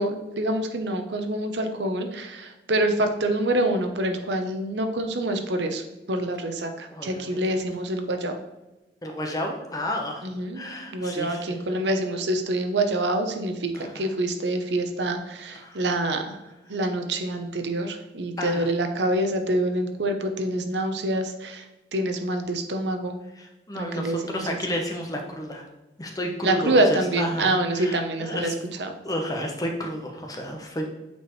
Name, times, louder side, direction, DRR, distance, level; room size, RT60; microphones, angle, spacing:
voice 1, 0.0-5.8 6.1-8.4 10.2-10.6 10.9-16.4 16.7-21.7 21.9-23.2 23.8-24.6 26.4-28.5 28.8-29.0, right 1 dB, 85° right, 6 dB, 0.8 m, -26 dB
voice 2, 6.9-7.4 9.0-11.6 13.8-14.0 15.6-15.8 18.4-18.7 23.3-25.7 26.0-28.5 29.0-30.9, left 1 dB, 20° left, 2 dB, 0.9 m, -32 dB
8.3 x 4.6 x 3.1 m, 1.0 s
head